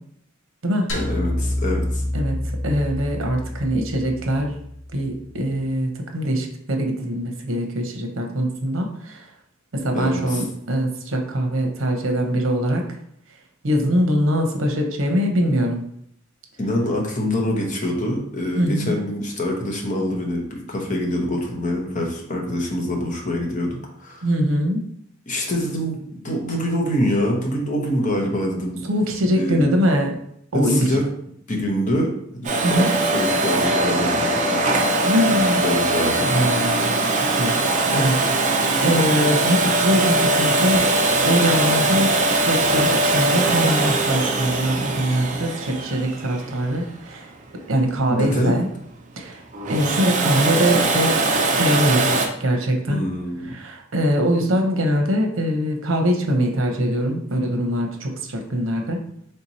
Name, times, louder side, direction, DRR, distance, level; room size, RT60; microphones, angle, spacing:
sound 1, 0.9-5.3, left 1 dB, 70° left, 1.0 m, -28 dB
voice 1, 0.9-2.0 9.9-10.4 16.6-24.3 25.3-26.0 26.2-28.8 29.3-29.6 30.5-31.1 31.5-34.9 35.6-36.4 48.1-48.6 52.9-53.6, left 1 dB, 40° left, 0 dB, 0.9 m, -25 dB
voice 2, 2.6-4.5 4.9-9.3 9.7-12.9 13.6-15.8 18.6-19.0 24.2-24.8 28.9-30.2 30.5-30.9 32.6-32.9 35.0-35.6 36.2-37.0 37.4-37.7 37.9-40.9 41.2-42.1 42.5-47.3 47.7-48.7 49.2-51.2 51.6-53.0 53.5-59.0, equal, 80° right, 3 dB, 0.7 m, -22 dB
Domestic sounds home sounds, 32.4-47.2 49.5-52.3, right 2 dB, 40° right, 0.5 m, -21 dB
3.3 x 2.8 x 4.1 m, 0.69 s
head